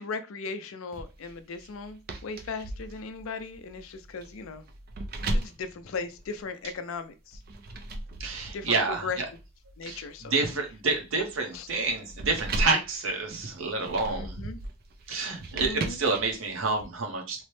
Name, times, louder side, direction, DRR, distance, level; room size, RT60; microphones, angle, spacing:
voice 1, 0.0-4.6 5.3-7.4 8.5-8.8 9.0-9.2 9.8-10.3 11.5-11.7 14.1-14.6 15.5-16.0, left 4 dB, 75° left, 0.4 m, -37 dB
sound 1, 0.9-6.7 7.3-16.8, right 1 dB, 45° right, 0.4 m, -37 dB
voice 2, 8.2-9.3 9.8-14.4 15.1-17.4, right 3 dB, 70° right, 0.8 m, -29 dB
3.0 x 2.0 x 3.1 m
head